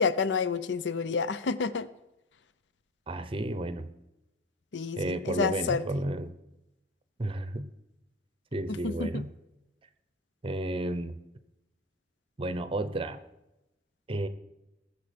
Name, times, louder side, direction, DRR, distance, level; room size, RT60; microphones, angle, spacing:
voice 1, 0.0-1.9 4.7-5.8 8.7-9.2, left 5 dB, 85° left, 14 dB, 0.6 m, -29 dB
voice 2, 3.1-3.9 5.0-6.3 7.2-7.7 8.5-9.3 10.4-11.2 12.4-13.2 14.1-14.3, right 1 dB, 30° right, 11 dB, 0.7 m, -32 dB
19.0 x 7.0 x 5.1 m, 0.92 s
head